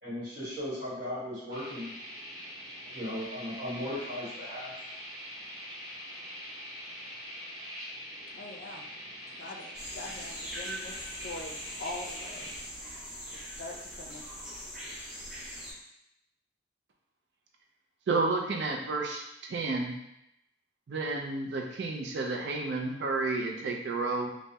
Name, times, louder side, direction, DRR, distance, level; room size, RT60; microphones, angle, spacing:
voice 1, 0.0-1.9 2.8-4.7, left 1 dB, 45° right, -10 dB, 1.3 m, -37 dB
sound 1, 1.5-12.6, equal, 20° right, 0.7 m, -44 dB
voice 2, 8.4-8.8 9.3-11.5 11.8-12.5 13.3-14.3, left 2 dB, 65° left, 1 dB, 0.4 m, -43 dB
sound 2, 9.7-15.7, equal, 5° right, 0.9 m, -42 dB
voice 3, 18.1-20.0 20.9-24.3, right 3 dB, 70° right, 1 dB, 0.4 m, -31 dB
3.3 x 2.0 x 2.7 m, 0.83 s
head